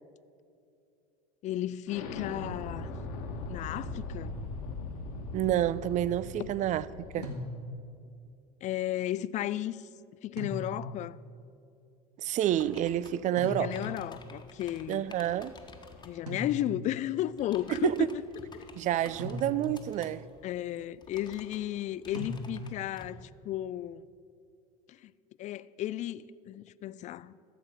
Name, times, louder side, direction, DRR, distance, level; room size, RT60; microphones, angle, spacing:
voice 1, 1.4-2.9 3.5-4.3 7.2-7.4 8.6-9.9 10.2-11.2 13.5-15.0 16.0-18.2 18.5-18.7 20.4-24.0 24.9-25.1 25.4-27.3, left 13 dB, 40° left, 0.4 m, -34 dB
Explosion, 1.9-7.4, left 2 dB, 70° left, 1.5 m, -39 dB
voice 2, 5.3-6.9 7.1-7.3 12.2-13.8 14.9-15.5 17.7-18.1 18.8-20.3, right 12 dB, 40° right, 0.4 m, -29 dB
sound 1, 7.2-8.0 10.4-11.1 13.4-14.1 16.3-17.0 19.2-20.0 22.1-22.9, equal, 80° right, 1.8 m, -39 dB
sound 2, 12.5-16.2 17.2-23.1, left 3 dB, 20° left, 1.3 m, -53 dB
13.5 x 7.2 x 6.3 m
hypercardioid pair, 80°, 20 cm